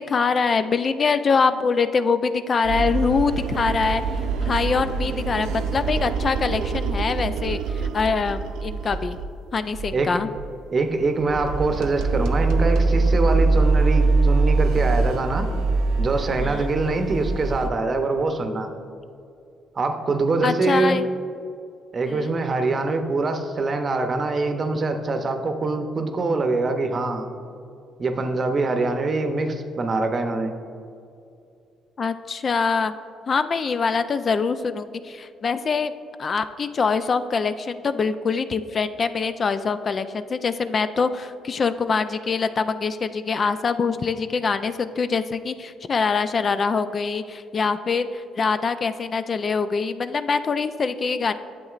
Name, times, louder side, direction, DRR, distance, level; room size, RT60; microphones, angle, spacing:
voice 1, 0.0-4.0 4.4-9.2 9.5-10.3 16.4-16.7 20.4-21.1 22.0-22.3 32.0-32.9 33.3-35.9 36.2-51.3, left 5 dB, 45° left, 11 dB, 0.3 m, -24 dB
sound 1, 2.6-9.4 9.7-10.0 10.4-10.5 10.9-17.7, right 3 dB, 80° right, 0.4 m, -23 dB
voice 2, 10.7-15.5 16.0-18.7 19.8-21.0 21.9-27.3 28.0-30.5, right 3 dB, 45° right, 6 dB, 0.7 m, -24 dB
9.4 x 7.3 x 2.4 m, 2.6 s
supercardioid pair, 70°, 0 cm